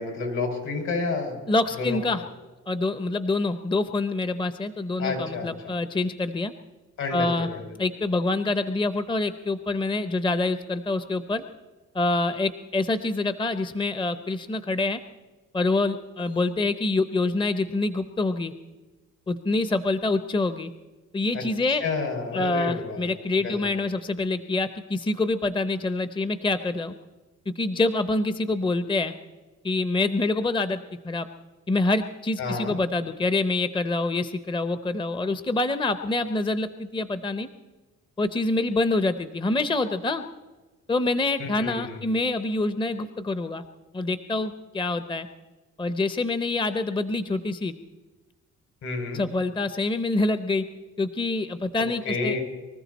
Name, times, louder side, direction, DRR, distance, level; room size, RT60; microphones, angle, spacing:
voice 1, 0.0-1.4 1.8-2.0 5.0-5.8 7.0-7.7 21.3-23.0 23.4-23.7 32.4-32.7 41.4-42.1 48.8-49.2 51.8-52.4, left 3 dB, 70° left, 2 dB, 5.9 m, -30 dB
voice 2, 1.5-2.2 2.7-6.5 7.1-7.5 7.8-11.4 11.9-15.0 15.5-18.5 19.3-20.7 21.1-21.8 22.3-26.9 27.6-29.1 29.6-30.8 31.0-31.3 31.7-37.5 38.2-40.2 40.9-43.6 43.9-45.3 45.8-47.7 49.1-50.6 51.0-52.4, left 2 dB, 15° left, 11 dB, 0.8 m, -26 dB
24.0 x 14.0 x 4.1 m, 1.2 s
cardioid pair, 90°, 30 cm